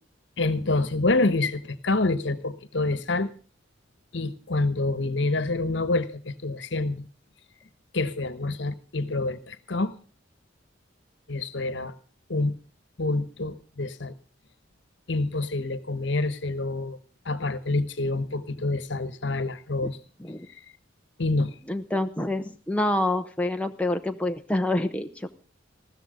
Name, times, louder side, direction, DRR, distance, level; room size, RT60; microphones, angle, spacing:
voice 1, 0.4-3.3 4.1-7.1 7.9-9.9 11.3-11.9 12.3-12.5 13.0-14.1 15.1-17.0 17.2-20.0 21.2-21.5, left 2 dB, 65° left, 14 dB, 1.2 m, -27 dB
voice 2, 21.7-25.3, left 1 dB, 5° left, 5 dB, 0.7 m, -27 dB
15.0 x 13.5 x 5.1 m, 0.37 s
head